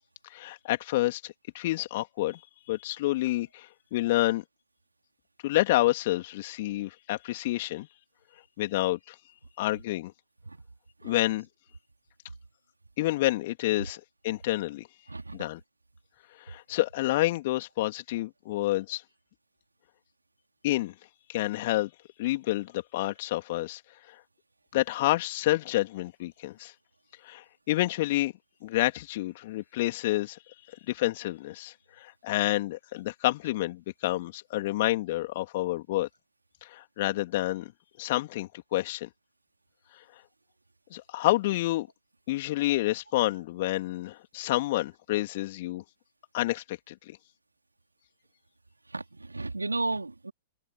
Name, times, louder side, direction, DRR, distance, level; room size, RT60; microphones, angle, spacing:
voice 1, 0.3-2.4 2.7-4.4 5.4-7.9 8.6-9.1 9.6-10.1 11.0-11.5 13.0-14.9 15.3-15.6 16.5-19.0 20.6-20.9 21.3-21.9 22.2-23.8 24.7-26.7 27.2-28.3 28.6-30.4 30.9-36.1 36.6-37.7 38.0-39.1 40.9-41.9 42.3-45.8 46.3-47.2, left 17 dB, 50° left, 3.2 m, -29 dB
voice 2, 48.9-50.3, right 3 dB, 85° right, 3.9 m, -33 dB
figure-of-eight pair, 105°, 0 cm